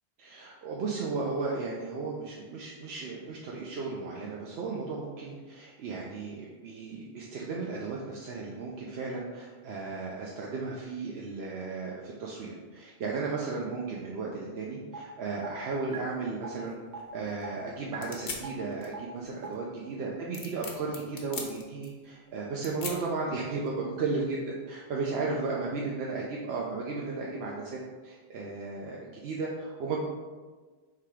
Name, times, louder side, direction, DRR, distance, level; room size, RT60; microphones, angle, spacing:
voice 1, 0.2-30.0, right 4 dB, 85° right, -3 dB, 0.9 m, -35 dB
sound 1, 14.9-15.0 15.4-15.5 15.9-16.0 16.4-16.5 16.9-17.0 17.4-17.5 17.9-18.0 18.4-18.5 18.9-19.0 19.4-19.5, right 7 dB, 55° right, 0.7 m, -39 dB
sound 2, 15.9-24.0, left 4 dB, 55° left, 0.8 m, -44 dB
3.9 x 2.8 x 4.7 m, 1.4 s
omnidirectional pair, 1.1 m